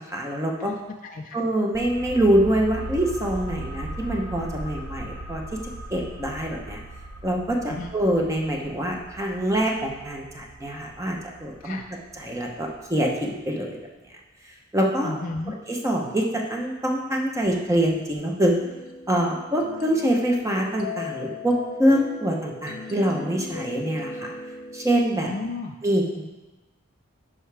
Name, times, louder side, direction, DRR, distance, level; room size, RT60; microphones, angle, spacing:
voice 1, 0.0-0.7 1.3-5.4 5.9-6.8 7.2-11.8 12.1-13.8 14.7-15.2 15.5-18.5 19.1-24.3 24.7-25.3 25.8-26.2, right 1 dB, 15° right, 0 dB, 0.8 m, -25 dB
voice 2, 0.6-1.4 7.7-7.9 11.6-11.8 15.0-15.6 25.2-25.8, left 3 dB, 40° left, 2 dB, 0.4 m, -33 dB
sound 1, 1.7-13.1 13.4-13.5, right 1 dB, 75° right, 1.7 m, -39 dB
sound 2, 18.6-25.0, left 3 dB, 80° left, 0.6 m, -37 dB
9.8 x 5.6 x 3.4 m, 1.1 s
head